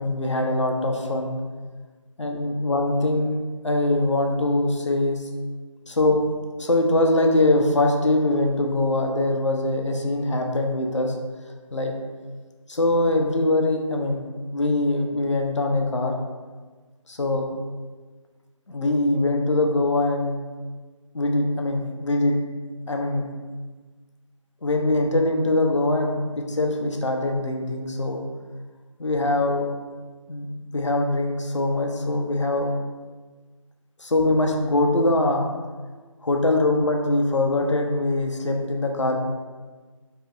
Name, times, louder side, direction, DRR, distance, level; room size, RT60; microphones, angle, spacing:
voice 1, 0.0-1.3 2.2-3.4 3.6-5.3 5.9-6.2 6.6-11.1 11.7-11.9 12.7-14.2 14.5-16.1 17.1-17.4 18.7-20.4 21.1-22.4 22.9-23.2 24.6-28.2 29.0-29.7 30.3-30.5 30.7-32.7 34.0-35.5 36.2-39.2, left 2 dB, 60° left, 2 dB, 0.5 m, -22 dB
2.7 x 2.0 x 3.6 m, 1.4 s
figure-of-eight pair, 180°, 17 cm